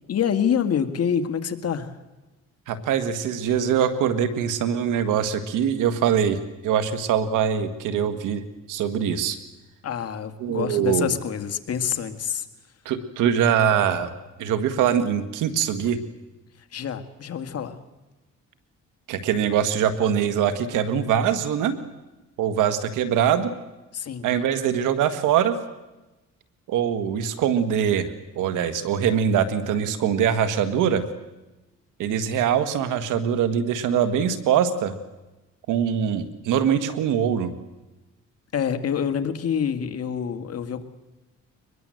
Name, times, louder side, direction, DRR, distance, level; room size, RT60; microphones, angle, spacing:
voice 1, 0.1-1.9 9.8-12.5 16.7-17.8 23.9-24.3 38.5-40.8, left 8 dB, 55° left, 8 dB, 2.0 m, -26 dB
voice 2, 2.7-8.4 8.7-9.4 10.4-11.1 12.9-14.1 14.4-16.0 19.1-21.8 22.4-23.5 24.2-25.6 26.7-31.0 32.0-34.9 35.7-37.5, right 8 dB, 90° right, 11 dB, 1.8 m, -23 dB
23.0 x 21.5 x 7.8 m, 1.1 s
cardioid pair, 90°, 30 cm